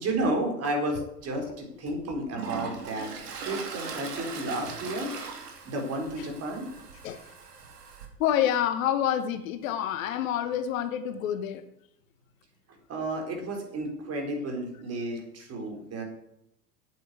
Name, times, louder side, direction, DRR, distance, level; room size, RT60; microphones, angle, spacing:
voice 1, 0.0-5.1 5.6-6.7 12.7-16.0, right 1 dB, 30° right, 4.0 m, -32 dB
Toilet flush, 1.2-1.3 1.9-8.1, right 5 dB, 65° right, 2.7 m, -40 dB
voice 2, 8.2-11.7, left 10 dB, 55° left, 1.2 m, -28 dB
8.7 x 8.7 x 8.3 m
figure-of-eight pair, 85°, 48 cm